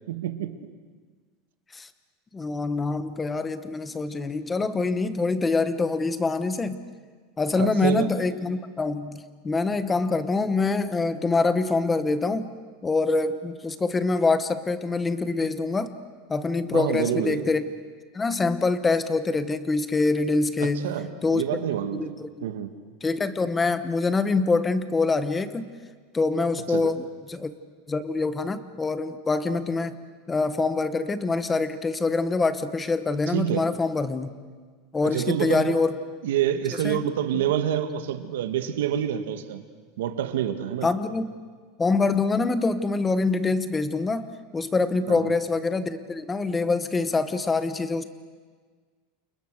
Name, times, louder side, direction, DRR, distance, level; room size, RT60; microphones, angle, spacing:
voice 1, 0.1-0.6 7.6-8.1 16.7-17.4 20.6-22.1 22.4-22.7 26.7-26.9 33.3-33.7 35.0-35.7 36.2-39.6 40.0-40.9 45.1-45.3, right 10 dB, 90° right, 8 dB, 1.9 m, -27 dB
voice 2, 2.3-6.8 7.4-12.5 12.8-15.9 16.3-17.6 18.1-20.9 21.2-21.4 21.9-22.5 23.0-25.7 26.1-27.5 27.9-30.0 30.3-34.3 34.9-36.0 36.8-37.0 37.3-37.4 40.8-41.3 41.8-44.3 44.5-48.0, left 3 dB, 10° left, 12 dB, 1.0 m, -25 dB
29.5 x 28.5 x 6.6 m, 1.5 s
supercardioid pair, 180°, 0 cm